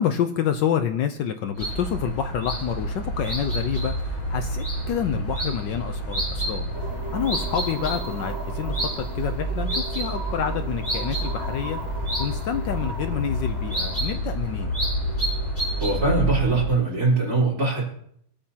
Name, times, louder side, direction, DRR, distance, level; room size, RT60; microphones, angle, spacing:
voice 1, 0.0-6.7 7.1-14.7, left 8 dB, 70° left, 7 dB, 1.3 m, -28 dB
sound 1, 1.6-16.7, right 1 dB, 5° left, 6.5 m, -28 dB
sound 2, 6.7-14.0, right 3 dB, 70° right, 2.8 m, -38 dB
voice 2, 15.8-17.8, right 3 dB, 45° right, -5 dB, 4.4 m, -22 dB
25.0 x 8.6 x 2.8 m, 0.69 s
omnidirectional pair, 2.3 m